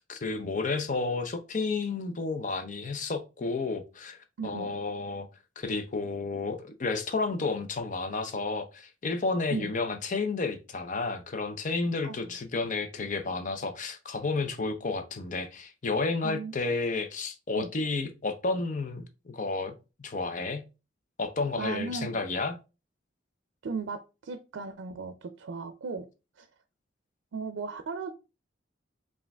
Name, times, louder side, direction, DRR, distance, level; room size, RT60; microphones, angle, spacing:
voice 1, 0.0-5.3 5.6-19.7 20.0-20.6 21.2-22.6, left 3 dB, 45° left, 0.6 m, -31 dB
voice 2, 4.4-4.7 9.5-9.7 12.0-12.3 16.2-16.7 17.5-17.7 21.6-22.2 23.6-26.1 26.4-26.5 27.3-28.1, right 4 dB, 85° right, 0.4 m, -36 dB
4.7 x 2.5 x 3.4 m
head